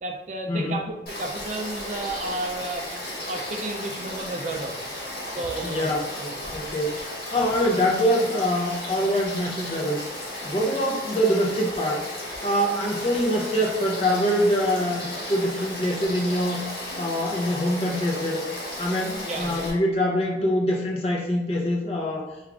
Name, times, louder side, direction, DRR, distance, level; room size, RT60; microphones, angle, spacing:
voice 1, 0.0-3.0 3.3-4.7 5.3-6.0 7.5-7.7 19.2-19.7, right 2 dB, 40° right, 3 dB, 0.3 m, -32 dB
Frog / Stream, 1.1-19.7, left 1 dB, 55° left, 1.2 m, -35 dB
voice 2, 5.6-7.0 7.3-10.0 10.4-12.1 12.4-16.6 17.0-18.4 18.8-22.3, equal, 35° left, -1 dB, 0.5 m, -24 dB
3.5 x 2.4 x 3.3 m, 1.0 s
head